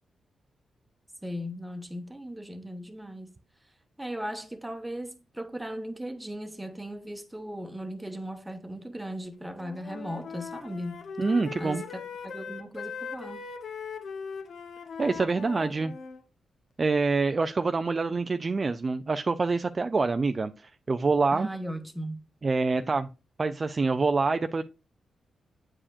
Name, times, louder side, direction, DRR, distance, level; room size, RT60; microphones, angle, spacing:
voice 1, 1.2-3.3 4.0-11.0 11.6-13.4 21.3-22.2, equal, 10° right, 1.0 m, -37 dB
Wind instrument woodwind instrument, 9.5-16.2, left 6 dB, 60° left, 0.8 m, -40 dB
voice 2, 11.2-11.8 15.0-15.9 16.8-21.5 22.4-23.1 23.4-24.6, right 4 dB, 35° right, 0.3 m, -26 dB
8.5 x 4.9 x 2.5 m
cardioid pair, 100°, 0 cm